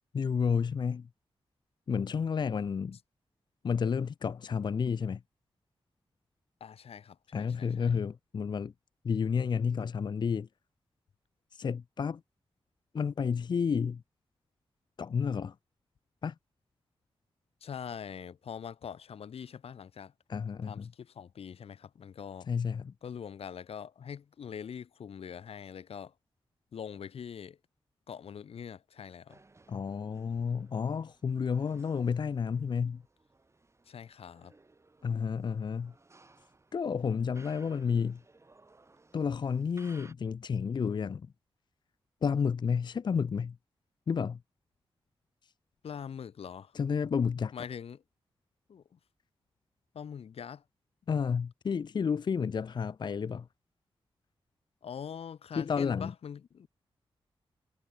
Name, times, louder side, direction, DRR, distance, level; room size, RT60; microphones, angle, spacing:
voice 1, 0.1-1.1 1.9-3.0 3.6-5.2 7.3-8.7 9.0-10.5 11.5-12.2 12.9-14.0 15.0-15.5 16.2-16.3 20.3-20.9 22.5-22.9 29.7-33.0 35.0-35.9 36.7-38.2 39.1-41.3 42.2-43.6 44.1-44.4 46.7-47.5 51.1-53.5 55.6-56.1, left 6 dB, 50° left, 0.5 m, -31 dB
voice 2, 6.6-8.0 17.6-20.1 20.6-22.5 23.0-26.1 26.7-27.6 28.1-29.4 33.9-34.5 45.8-46.7 47.5-48.0 48.7-49.0 49.9-50.6 54.8-56.7, left 7 dB, 85° left, 3.4 m, -43 dB
sound 1, 29.3-40.1, right 3 dB, 30° right, 7.6 m, -61 dB
wide cardioid pair, 100°, 10 cm